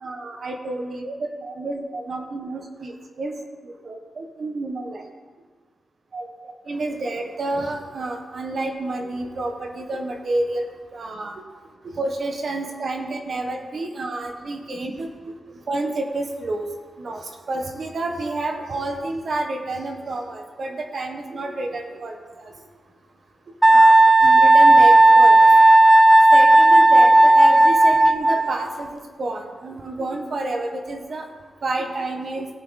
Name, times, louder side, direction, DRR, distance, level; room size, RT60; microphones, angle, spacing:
voice 1, 0.0-2.9 3.2-3.3 3.8-5.0 6.1-6.3 6.7-10.6 10.9-11.4 11.8-15.1 15.7-16.6 17.0-17.2 17.5-22.5 23.7-25.4 26.3-31.2 31.6-32.5, right 2 dB, 55° right, 3 dB, 1.3 m, -29 dB
Wind instrument woodwind instrument, 23.6-28.6, right 2 dB, 20° right, 0.5 m, -12 dB
17.0 x 5.7 x 4.1 m, 1.4 s
cardioid pair, 95°, 0 cm